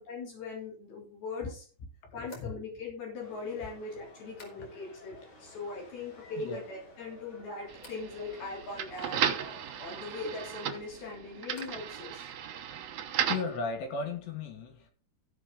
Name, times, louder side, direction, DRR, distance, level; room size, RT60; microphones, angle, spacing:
voice 1, 0.0-1.7 2.1-9.5 9.8-12.3, left 3 dB, 65° left, -2 dB, 5.2 m, -40 dB
voice 2, 2.0-2.5 6.4-6.6 13.3-14.9, left 4 dB, 85° left, 3 dB, 4.5 m, -36 dB
sound 1, 2.2-5.1 5.3-5.9 6.3-6.9 7.7-8.1 10.5-12.0 12.2-12.8, equal, 30° left, 4.0 m, -57 dB
sound 2, 3.2-10.3, left 2 dB, 50° left, 6.6 m, -54 dB
sound 3, 7.7-13.6, right 9 dB, 65° right, 1.9 m, -35 dB
15.5 x 5.6 x 5.1 m, 0.39 s
omnidirectional pair, 4.8 m